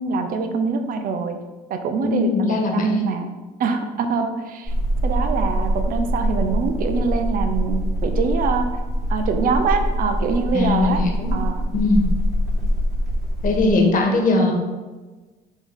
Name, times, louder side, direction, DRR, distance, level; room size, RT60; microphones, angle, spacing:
voice 1, 0.0-1.4 1.7-3.3 3.6-4.7 5.0-8.7 9.1-11.0 11.3-11.6, right 5 dB, 55° right, 6 dB, 0.6 m, -24 dB
voice 2, 2.0-3.0 10.5-11.3 11.7-12.1 13.4-14.5, left 3 dB, 50° left, 2 dB, 1.2 m, -20 dB
sound 1, 4.7-13.7, equal, ahead, 2.0 m, -23 dB
5.1 x 3.8 x 5.1 m, 1.3 s
cardioid pair, 110°, 17 cm